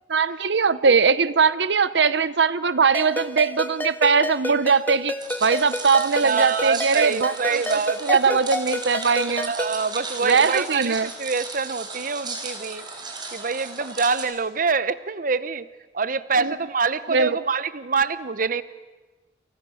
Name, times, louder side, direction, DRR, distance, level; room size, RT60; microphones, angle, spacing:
voice 1, 0.1-5.1 5.4-9.5 10.2-11.1 16.4-16.5 17.1-17.4, right 5 dB, 90° right, 16 dB, 0.8 m, -21 dB
Ringtone, 2.9-9.8, left 1 dB, 10° left, 1.6 m, -30 dB
sound 1, 5.2-14.3, right 3 dB, 25° right, 4.6 m, -36 dB
voice 2, 6.2-8.4 9.5-12.8 13.3-15.7 15.9-18.6, right 5 dB, 50° right, 15 dB, 0.9 m, -25 dB
30.0 x 28.5 x 6.4 m, 1.2 s
head